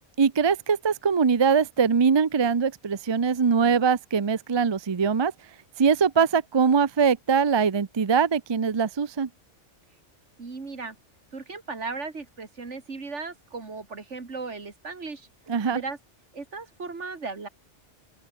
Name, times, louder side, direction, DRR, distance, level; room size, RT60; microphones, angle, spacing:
voice 1, 0.2-5.3 5.8-9.3 15.5-15.8, right 6 dB, 30° right, 0.5 m, -22 dB
voice 2, 10.4-11.0 11.3-15.3 15.7-16.0 16.3-17.5, right 4 dB, 75° right, 2.8 m, -36 dB
open air
omnidirectional pair, 1.2 m